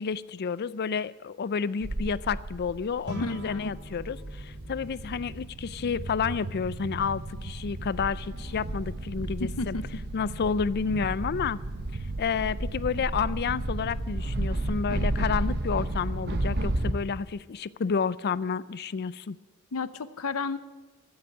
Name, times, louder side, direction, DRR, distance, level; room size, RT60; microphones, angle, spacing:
voice 1, 0.0-9.8 10.1-11.6 12.2-19.4, left 6 dB, 50° left, 18 dB, 0.4 m, -30 dB
sound 1, 1.8-16.9, right 2 dB, 50° right, 1.0 m, -33 dB
sound 2, 3.0-12.5, equal, 75° right, 2.6 m, -48 dB
voice 2, 3.2-3.7 9.4-9.8 19.7-20.6, left 4 dB, 80° left, 13 dB, 0.7 m, -32 dB
14.5 x 8.0 x 8.7 m, 1.2 s
head